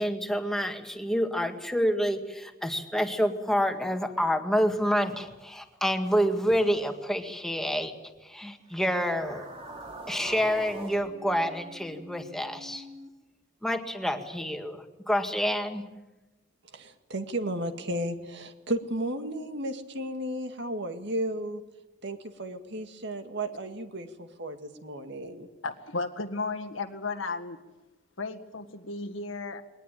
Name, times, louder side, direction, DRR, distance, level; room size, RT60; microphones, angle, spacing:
voice 1, 0.0-7.9 8.2-9.5 10.1-12.9 13.6-15.8, equal, ahead, 5 dB, 1.9 m, -28 dB
sound 1, 8.7-13.1, right 1 dB, 30° right, 3.2 m, -44 dB
voice 2, 16.7-21.6 22.0-25.5, right 1 dB, 60° right, 7 dB, 2.0 m, -34 dB
voice 3, 25.6-27.6 28.2-29.6, left 3 dB, 75° left, 5 dB, 1.8 m, -34 dB
22.0 x 19.0 x 9.2 m, 1.1 s
head